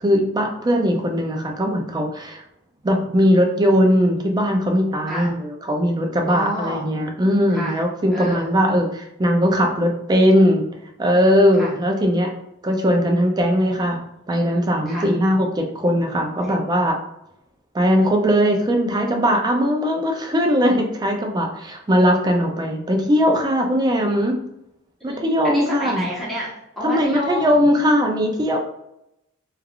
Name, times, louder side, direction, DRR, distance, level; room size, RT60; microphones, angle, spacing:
voice 1, 0.0-2.4 2.8-10.6 11.0-12.3 12.6-14.0 14.3-17.0 17.7-24.4 25.0-26.1 26.8-28.6, equal, 20° right, 3 dB, 0.4 m, -19 dB
voice 2, 6.3-6.9 7.5-7.8 8.1-8.5 11.6-11.8 14.9-15.1 16.4-16.5 25.0-27.7, equal, ahead, -8 dB, 1.0 m, -29 dB
3.2 x 2.3 x 2.3 m, 0.82 s
head